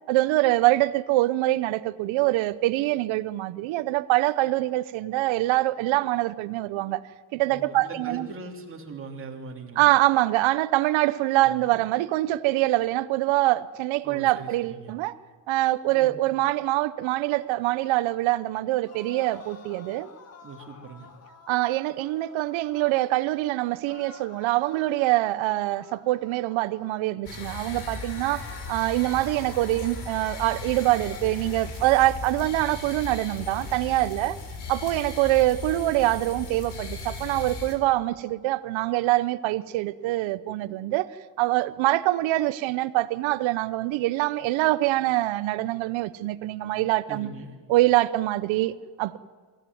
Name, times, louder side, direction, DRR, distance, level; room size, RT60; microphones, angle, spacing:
voice 1, 0.1-7.0 7.3-8.3 9.8-15.2 15.5-20.1 21.5-34.4 34.7-41.1 41.4-47.3 47.7-49.2, right 17 dB, 85° right, 0.9 m, -24 dB
voice 2, 7.5-9.9 11.4-11.8 14.0-14.9 15.9-16.2 20.4-21.1 47.1-47.5, right 3 dB, 25° right, 2.8 m, -40 dB
sound 1, 18.8-23.1 23.9-27.0 27.4-31.3, left 5 dB, 35° left, 1.8 m, -50 dB
sound 2, 27.3-37.8, left 4 dB, 60° left, 3.8 m, -37 dB
24.0 x 16.0 x 9.4 m
cardioid pair, 170°, 45 cm